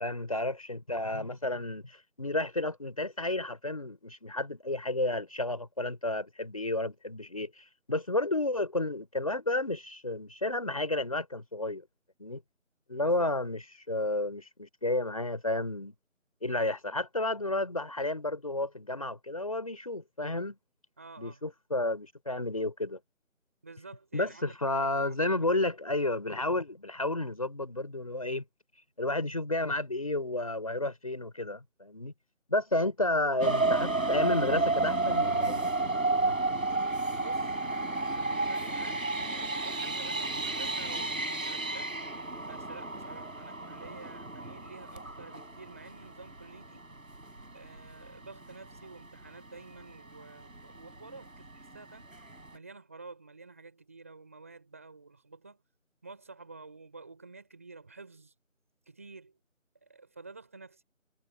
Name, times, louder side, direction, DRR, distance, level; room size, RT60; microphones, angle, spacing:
voice 1, 0.0-7.6 7.9-11.8 12.2-12.4 12.9-13.6 13.9-15.9 16.4-20.6 21.2-23.0 24.1-28.4 29.0-32.1 32.5-36.4, left 2 dB, 25° left, 5.6 m, -31 dB
voice 2, 13.0-13.4 21.0-21.4 23.6-25.7 32.8-32.9 37.0-37.5 37.8-41.9 42.5-46.8 47.5-52.1 52.5-55.6 56.0-58.3 58.8-59.4 59.8-60.8, right 3 dB, 10° right, 5.1 m, -50 dB
sound 1, 33.4-46.1 46.7-46.8 47.2-47.4 47.8-47.9, right 3 dB, 85° right, 6.9 m, -31 dB
figure-of-eight pair, 180°, 40 cm